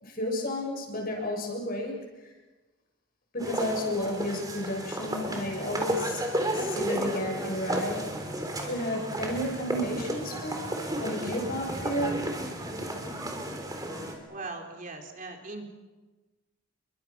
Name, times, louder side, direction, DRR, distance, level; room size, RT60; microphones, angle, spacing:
voice 1, 0.0-2.1 3.3-6.2 6.5-8.1 8.6-12.3, left 1 dB, 45° left, 1 dB, 6.8 m, -32 dB
sound 1, 3.4-14.1, right 1 dB, 15° right, 3.8 m, -33 dB
voice 2, 14.3-15.6, right 3 dB, 40° right, 3 dB, 3.8 m, -39 dB
29.0 x 23.5 x 6.1 m, 1.2 s
head